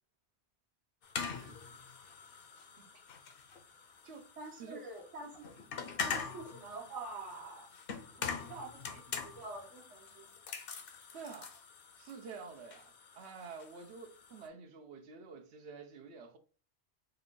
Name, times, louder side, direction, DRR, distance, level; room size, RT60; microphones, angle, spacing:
sound 1, 1.0-14.5, left 6 dB, 60° left, 0.8 m, -44 dB
voice 1, 1.3-1.6 3.7-3.8 4.0-4.3 4.6-4.9 11.1-11.6 12.0-16.4, right 5 dB, 70° right, 0.9 m, -49 dB
voice 2, 4.4-5.5 6.0-7.7 8.1-10.3, right 3 dB, 85° right, 1.3 m, -47 dB
4.4 x 2.5 x 3.6 m
omnidirectional pair, 1.2 m